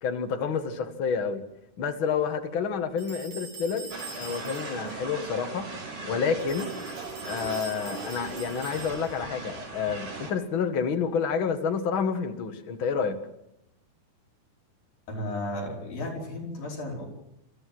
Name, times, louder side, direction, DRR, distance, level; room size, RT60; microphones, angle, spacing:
voice 1, 0.0-1.4 1.8-5.7 6.0-6.7 7.2-13.2, left 6 dB, 45° left, 6 dB, 2.0 m, -29 dB
sound 1, 3.0-4.9 6.4-9.3, right 4 dB, 45° right, 5.9 m, -44 dB
sound 2, 3.9-10.3, right 3 dB, 80° right, 6.9 m, -38 dB
voice 2, 15.1-17.1, left 1 dB, 70° left, -1 dB, 6.8 m, -34 dB
29.0 x 14.5 x 7.8 m, 0.83 s
omnidirectional pair, 4.2 m